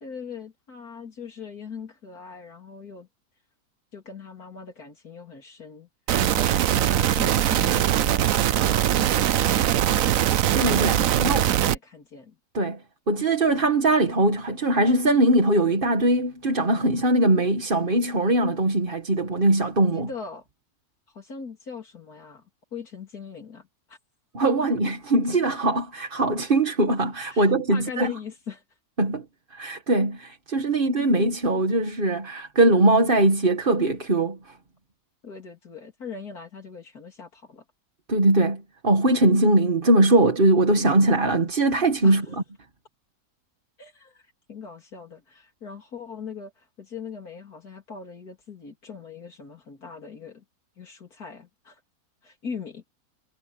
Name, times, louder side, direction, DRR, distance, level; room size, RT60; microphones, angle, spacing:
voice 1, 0.0-3.1 3.9-5.9 6.3-10.1 11.0-12.4 19.9-20.5 21.1-24.0 27.3-28.6 35.2-37.6 42.0-42.4 43.8-50.4 50.8-51.8 52.2-52.8, left 5 dB, 80° left, 3.8 m, -41 dB
sound 1, 6.1-11.8, right 11 dB, 65° right, 1.1 m, -21 dB
voice 2, 10.5-11.4 12.5-12.8 13.1-20.1 24.3-28.1 29.0-29.2 29.5-34.4 38.1-42.2, right 2 dB, 35° right, 1.8 m, -21 dB
omnidirectional pair, 1.6 m